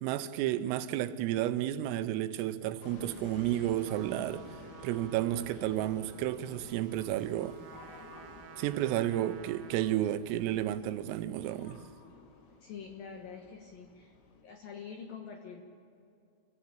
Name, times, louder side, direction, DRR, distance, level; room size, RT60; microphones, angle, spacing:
voice 1, 0.0-4.5 4.8-7.6 8.6-11.8, right 13 dB, 85° right, 3.4 m, -32 dB
sound 1, 2.8-14.4, left 4 dB, 90° left, 5.0 m, -52 dB
Trumpet, 3.8-10.1, right 7 dB, 65° right, 2.9 m, -53 dB
voice 2, 12.6-14.1 14.4-15.6, left 6 dB, 65° left, 2.4 m, -45 dB
26.5 x 16.0 x 8.9 m
omnidirectional pair, 6.0 m